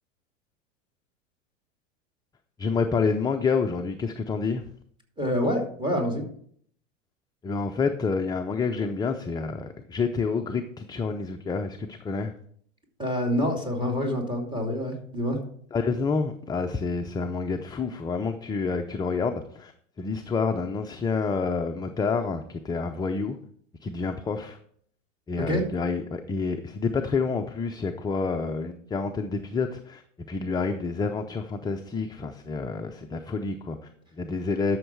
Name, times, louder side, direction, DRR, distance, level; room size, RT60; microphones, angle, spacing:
voice 1, 2.6-4.7 7.4-12.3 15.7-23.4 23.8-24.6 25.3-34.8, left 4 dB, 10° left, 5 dB, 0.5 m, -28 dB
voice 2, 5.2-6.2 13.0-15.4 25.4-25.6, equal, 10° right, 2 dB, 2.7 m, -27 dB
12.0 x 6.4 x 4.6 m, 0.63 s
hypercardioid pair, 105°, 38 cm